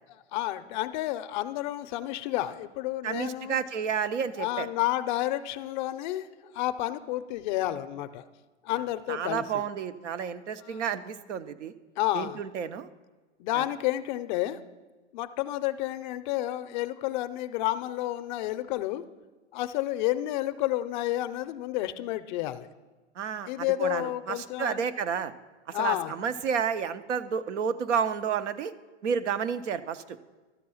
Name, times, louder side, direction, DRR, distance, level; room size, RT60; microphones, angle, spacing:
voice 1, 0.3-3.6 4.4-8.2 8.6-9.6 10.6-10.8 12.0-12.8 13.4-14.6 15.1-19.0 19.5-22.7 23.5-24.8 25.7-26.1, left 15 dB, 45° left, 12 dB, 0.5 m, -30 dB
voice 2, 3.0-4.7 9.1-11.7 12.1-12.9 13.5-13.6 23.2-25.3 25.7-28.7 29.0-30.2, right 7 dB, 90° right, 13 dB, 0.7 m, -31 dB
12.5 x 4.8 x 6.9 m, 1.3 s
hypercardioid pair, 130°, 35 cm